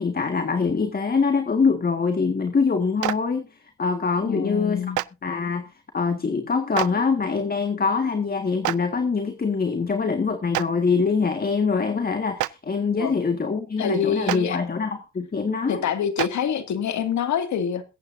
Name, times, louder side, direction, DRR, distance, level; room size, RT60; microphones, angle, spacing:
voice 1, 0.0-4.9 5.2-15.8, left 5 dB, 30° left, 1.7 m, -24 dB
Clapping, 3.0-3.1 4.9-5.0 6.7-6.9 8.6-8.8 10.5-10.6 12.4-12.5 14.3-14.4 16.2-16.3, right 17 dB, 80° right, 0.6 m, -24 dB
voice 2, 4.2-5.0 13.0-13.2 13.8-14.6 15.7-17.8, left 8 dB, 70° left, 2.3 m, -26 dB
22.0 x 8.7 x 2.7 m
cardioid pair, 90°, 30 cm